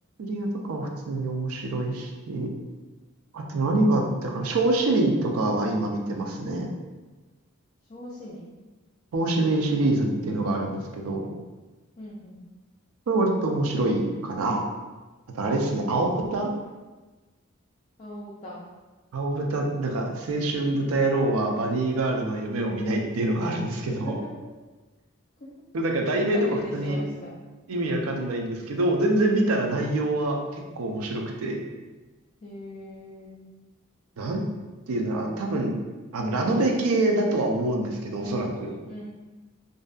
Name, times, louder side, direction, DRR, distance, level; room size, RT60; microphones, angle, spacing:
voice 1, 0.2-2.5 3.3-6.7 9.1-11.3 13.1-14.6 15.3-16.5 19.1-24.1 25.7-27.0 27.7-31.6 34.2-34.4 34.9-35.7 36.1-38.7, right 2 dB, 90° right, 1 dB, 0.4 m, -25 dB
voice 2, 7.9-8.5 12.0-12.4 15.5-16.4 18.0-18.6 23.8-24.2 25.4-25.5 26.3-27.4 29.5-29.9 32.4-33.4 38.2-38.6 38.9-39.0, left 1 dB, 35° left, -6 dB, 0.4 m, -39 dB
2.5 x 2.2 x 2.4 m, 1.2 s
head